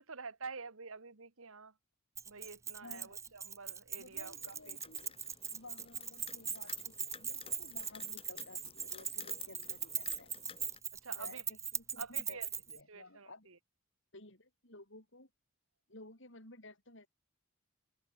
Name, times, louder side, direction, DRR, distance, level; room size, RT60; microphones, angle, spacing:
voice 1, 0.0-1.7 2.2-4.8 10.9-11.4 12.0-12.5 12.9-13.6, right 4 dB, 75° right, 1.7 m, -48 dB
Keys jangling, 2.2-12.8, right 7 dB, 15° right, 0.8 m, -40 dB
voice 2, 2.8-3.2 3.9-5.1 5.5-10.3 11.1-12.4 12.7-13.5 14.1-15.3 15.9-17.1, left 2 dB, 60° left, 7.0 m, -55 dB
sound 1, 4.1-10.8, left 7 dB, 25° left, 2.3 m, -53 dB
head